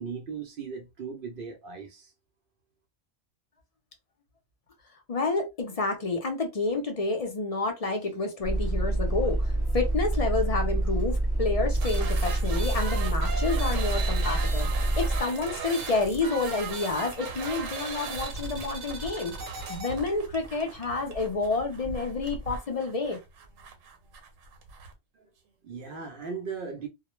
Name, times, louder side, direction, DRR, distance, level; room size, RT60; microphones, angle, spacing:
voice 1, 0.0-2.1 25.2-25.3 25.6-26.9, right 5 dB, 60° right, 0.6 m, -37 dB
voice 2, 5.1-14.7 15.0-19.3 19.7-23.2, left 3 dB, 45° left, 0.5 m, -29 dB
sound 1, 8.4-15.2, right 1 dB, 20° left, 0.9 m, -26 dB
sound 2, 11.7-24.9, right 4 dB, 80° right, 1.0 m, -37 dB
2.2 x 2.1 x 3.0 m
omnidirectional pair, 1.3 m